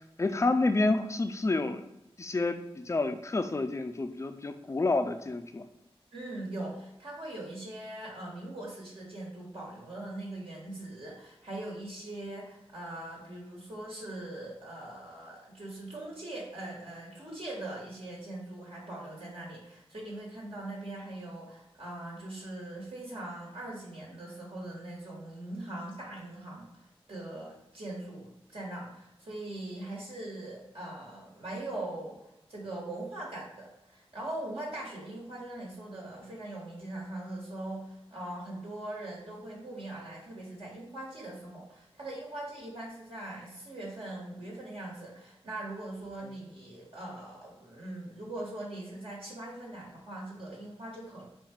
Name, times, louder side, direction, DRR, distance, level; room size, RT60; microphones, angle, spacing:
voice 1, 0.2-1.9 2.2-5.6, left 2 dB, 30° left, 8 dB, 0.4 m, -29 dB
voice 2, 6.1-32.2 32.5-51.2, right 1 dB, 65° right, -5 dB, 1.5 m, -41 dB
4.0 x 2.3 x 4.4 m, 0.88 s
cardioid pair, 50°, 10 cm